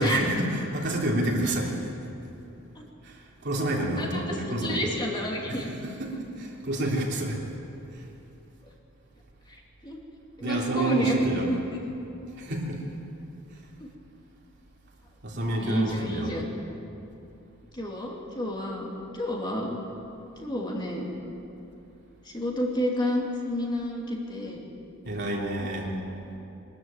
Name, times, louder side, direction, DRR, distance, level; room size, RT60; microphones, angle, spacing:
voice 1, 0.0-1.8 3.0-4.9 5.8-7.4 8.0-8.1 10.4-11.5 12.3-12.8 15.2-16.4 25.1-25.9, right 1 dB, 55° right, -2 dB, 3.3 m, -28 dB
voice 2, 3.9-5.7 9.8-10.0 10.4-11.8 13.8-13.9 15.5-16.4 17.7-18.9 19.1-19.8 20.4-21.1 22.2-24.6, left 1 dB, 20° left, -2 dB, 2.8 m, -30 dB
23.0 x 13.0 x 9.1 m, 2.8 s
head